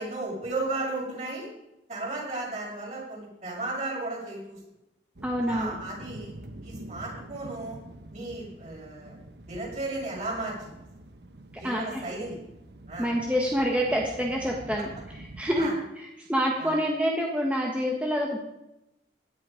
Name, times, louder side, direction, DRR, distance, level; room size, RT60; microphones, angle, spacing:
voice 1, 0.0-1.5 1.9-4.6 5.5-6.3 6.6-7.8 8.1-9.2 9.5-10.8 11.6-12.4 12.9-13.1 15.6-15.7 16.6-16.7, right 2 dB, 40° right, -3 dB, 6.4 m, -34 dB
sound 1, 5.1-15.7, right 1 dB, 65° right, 1.1 m, -46 dB
voice 2, 5.2-5.8 11.5-12.0 13.0-18.4, equal, 10° right, -1 dB, 1.4 m, -27 dB
16.5 x 11.0 x 5.1 m, 0.91 s
head